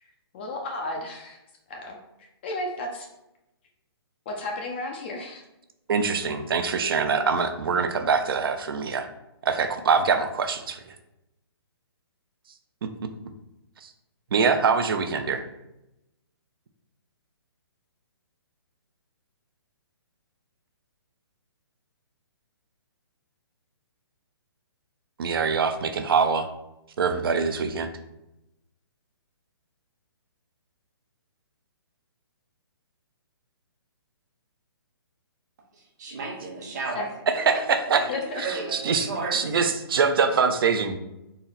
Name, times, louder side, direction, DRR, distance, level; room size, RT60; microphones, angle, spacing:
voice 1, 0.3-1.4 1.7-3.1 4.3-5.4 36.9-37.1 38.1-38.4, left 2 dB, 25° left, 1 dB, 0.4 m, -33 dB
voice 2, 5.9-9.1 9.4-11.0 13.8-13.9 14.3-15.4 25.2-26.5 27.0-27.9 37.3-38.0 38.4-41.0, right 5 dB, 60° right, 7 dB, 0.5 m, -24 dB
voice 3, 35.7-37.0 37.3-37.6 37.9-39.6, right 3 dB, 45° right, -1 dB, 1.1 m, -34 dB
4.0 x 2.0 x 3.9 m, 0.90 s
hypercardioid pair, 160°, 14 cm